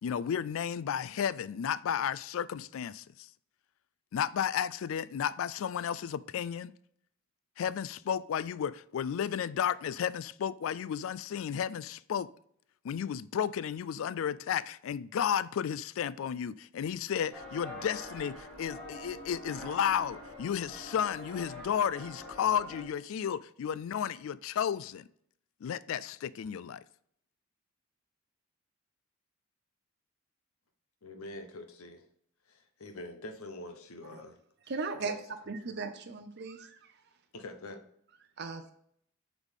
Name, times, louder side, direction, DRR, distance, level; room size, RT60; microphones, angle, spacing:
voice 1, 0.0-3.3 4.1-6.7 7.6-12.3 12.8-25.1 25.6-26.8, left 8 dB, 65° left, 0.3 m, -33 dB
sound 1, 17.3-22.8, left 1 dB, 5° left, 1.7 m, -45 dB
voice 2, 31.0-32.1 32.5-34.4 34.9-35.2 37.3-37.8, left 2 dB, 85° left, 0.9 m, -45 dB
voice 3, 34.7-35.1 35.5-36.8 38.4-38.7, right 4 dB, 50° right, 0.6 m, -37 dB
8.0 x 4.0 x 3.6 m
head